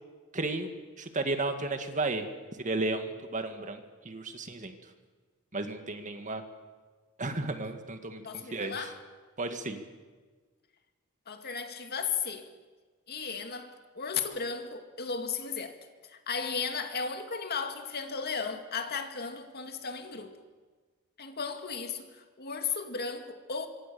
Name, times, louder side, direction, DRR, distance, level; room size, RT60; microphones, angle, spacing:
voice 1, 0.3-0.7 1.0-2.3 2.6-4.8 5.5-6.4 7.2-8.9 9.4-9.8, right 2 dB, 35° right, 2.0 m, -33 dB
voice 2, 8.2-9.0 11.3-12.5 13.1-15.8 16.1-20.4 21.2-23.7, left 5 dB, 50° left, 2.2 m, -35 dB
26.0 x 24.5 x 7.0 m
head